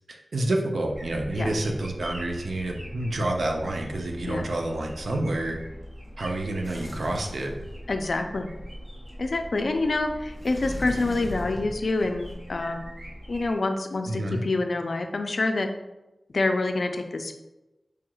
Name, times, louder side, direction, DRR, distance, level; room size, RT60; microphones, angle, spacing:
voice 1, 0.1-5.6 6.2-7.5 14.1-14.4, right 1 dB, 75° right, 2 dB, 0.5 m, -28 dB
sound 1, 0.9-13.5, equal, 30° right, 1.1 m, -42 dB
Sliding door, 6.6-8.2 10.3-12.3, left 1 dB, 5° left, 0.9 m, -38 dB
voice 2, 7.9-8.5 9.2-12.9 13.3-15.7 16.3-17.3, left 2 dB, 65° left, 6 dB, 0.3 m, -27 dB
4.7 x 2.3 x 3.0 m, 1.0 s
wide cardioid pair, 90°, 0 cm